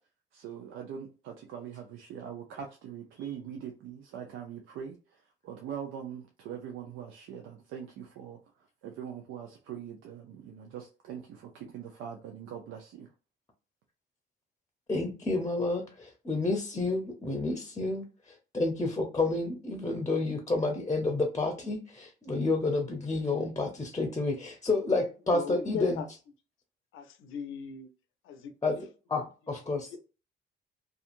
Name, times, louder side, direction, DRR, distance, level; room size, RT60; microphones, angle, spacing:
voice 1, 0.3-8.4 8.8-13.1, right 8 dB, 90° right, 0.5 m, -42 dB
voice 2, 14.9-26.0 28.6-28.8 29.1-29.9, left 3 dB, 20° left, 0.6 m, -30 dB
voice 3, 25.3-26.1 26.9-27.9 28.2-28.5 29.9-30.0, left 7 dB, 85° left, 0.6 m, -38 dB
2.7 x 2.4 x 2.5 m
cardioid pair, 90°, 20 cm